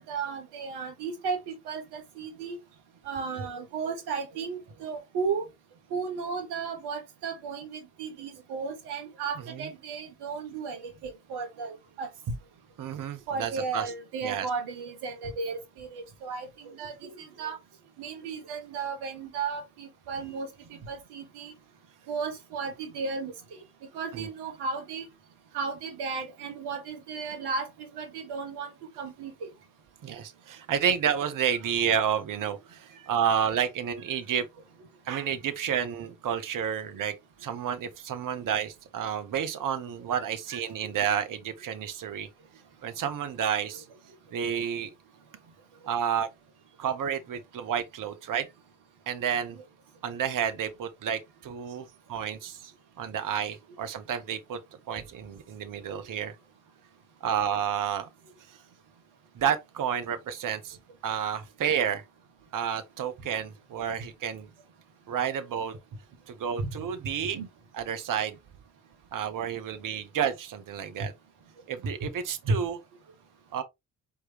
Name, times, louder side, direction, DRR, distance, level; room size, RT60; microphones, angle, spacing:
voice 1, 0.0-2.6 3.0-5.4 5.9-12.1 13.3-17.6 18.0-21.5 22.1-23.6 23.9-25.1 25.5-28.7 29.0-29.5 32.4-32.5 55.9-56.0 66.6-66.7 67.3-67.5 72.4-72.6, right 4 dB, 70° right, 1.5 m, -34 dB
voice 2, 9.3-9.7 12.8-13.9 14.2-14.5 24.1-24.3 30.0-34.5 35.1-37.1 37.4-42.3 42.8-43.8 44.3-44.9 45.9-46.3 46.8-48.5 49.1-49.6 50.0-52.6 53.0-54.6 54.9-56.3 57.2-58.1 59.3-60.8 61.0-62.0 62.5-64.5 65.1-65.7 66.3-67.4 67.7-68.4 69.1-71.1 71.7-72.8 73.5-73.6, right 8 dB, 50° right, 0.9 m, -30 dB
4.6 x 3.5 x 2.9 m
hypercardioid pair, 40°, 41 cm